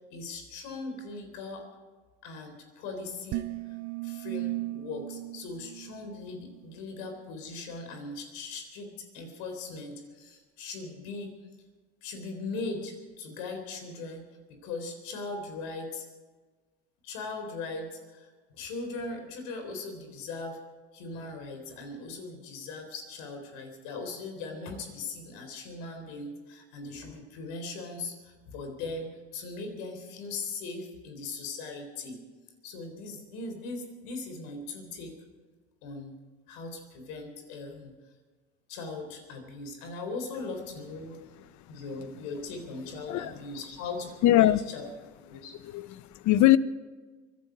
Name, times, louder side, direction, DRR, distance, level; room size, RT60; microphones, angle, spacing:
voice 1, 0.1-1.7 2.2-3.8 4.0-11.4 12.0-16.0 17.0-20.6 20.9-32.2 32.6-35.2 35.8-36.1 36.5-37.9 38.7-41.2 41.7-44.9 45.3-45.6, left 3 dB, 75° left, 5 dB, 3.9 m, -39 dB
sound 1, 3.3-6.7, right 18 dB, 55° right, 0.6 m, -37 dB
voice 2, 44.2-44.6 45.3-46.6, left 14 dB, 55° left, 17 dB, 0.8 m, -22 dB
24.0 x 11.0 x 5.2 m, 1.4 s
supercardioid pair, 80°, 34 cm